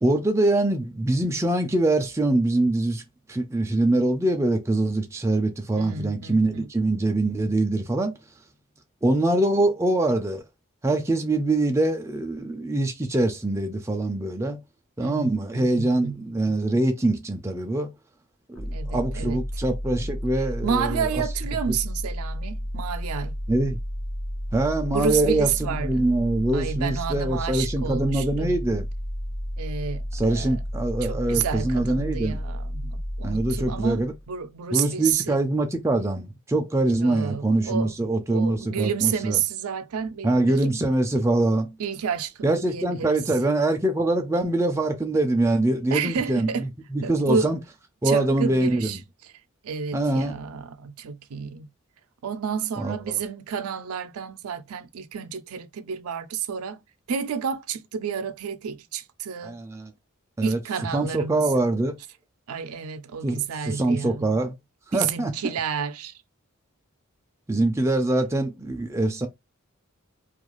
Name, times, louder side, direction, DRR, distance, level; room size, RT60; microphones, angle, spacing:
voice 1, 0.0-3.0 3.3-8.2 9.0-10.4 10.8-14.6 15.0-17.9 18.5-21.2 23.5-23.8 24.5-25.5 25.8-28.9 30.1-32.4 33.2-34.1 34.7-39.4 40.2-41.8 42.4-46.5 46.9-47.6 48.0-48.9 49.9-50.4 52.8-53.0 59.4-59.9 60.4-60.6 60.9-62.0 63.2-64.5 64.9-65.5 67.5-69.3, right 2 dB, 15° right, 0.3 m, -24 dB
voice 2, 5.8-6.7 15.0-16.2 18.7-19.4 20.6-23.4 24.9-26.1 26.5-28.6 29.6-30.5 31.0-34.0 34.3-35.4 37.0-37.9 38.3-40.7 41.8-43.2 45.9-46.7 47.0-47.5 48.0-49.3 49.6-51.7 52.2-56.8 57.1-59.6 60.4-61.5 62.5-64.3 64.9-66.1, right 7 dB, 85° right, 0.4 m, -30 dB
sound 1, 18.5-34.3, equal, 65° left, 1.0 m, -32 dB
2.4 x 2.3 x 3.0 m
head